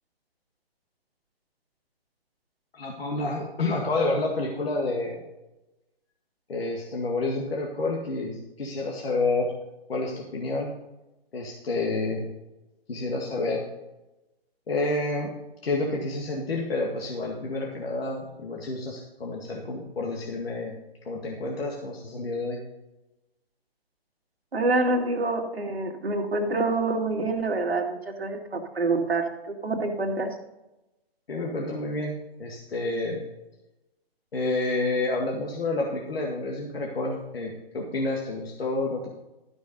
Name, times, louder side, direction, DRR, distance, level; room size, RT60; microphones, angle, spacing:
voice 1, 2.7-5.2 6.5-9.5 9.9-10.7 11.3-12.3 12.9-13.6 14.7-15.3 15.6-20.7 21.1-22.6 31.3-33.2 34.3-39.1, left 2 dB, 75° left, -1 dB, 2.1 m, -29 dB
voice 2, 24.5-30.3, right 2 dB, 85° right, 2 dB, 2.2 m, -26 dB
13.0 x 6.3 x 5.4 m, 0.98 s
hypercardioid pair, 140°, 30 cm